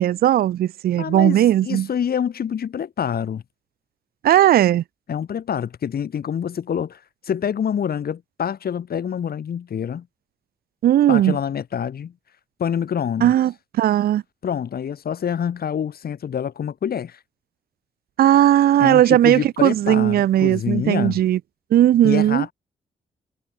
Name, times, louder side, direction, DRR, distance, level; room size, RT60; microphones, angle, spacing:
voice 1, 0.0-1.9 4.2-4.8 10.8-11.4 13.2-14.2 18.2-21.4 21.7-22.4, right 12 dB, 60° right, 0.4 m, -17 dB
voice 2, 1.0-3.4 5.1-10.1 11.1-12.1 12.6-13.3 14.4-17.2 18.8-21.2 22.0-22.5, left 8 dB, 60° left, 1.2 m, -26 dB
supercardioid pair, 45°, 18 cm